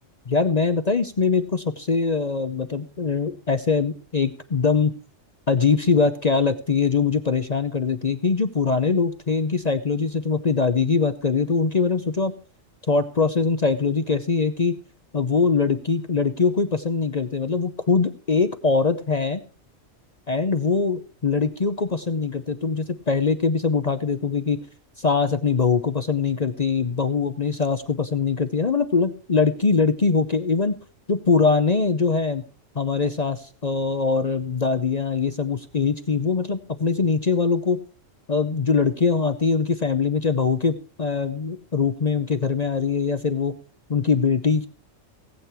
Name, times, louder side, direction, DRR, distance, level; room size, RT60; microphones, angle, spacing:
voice 1, 0.3-4.9 5.5-12.3 12.9-14.8 15.1-19.4 20.3-24.6 25.0-30.8 31.1-32.4 32.8-37.8 38.3-43.5 43.9-44.7, left 4 dB, 40° left, 10 dB, 0.7 m, -22 dB
18.0 x 8.5 x 4.5 m, 0.38 s
omnidirectional pair, 1.4 m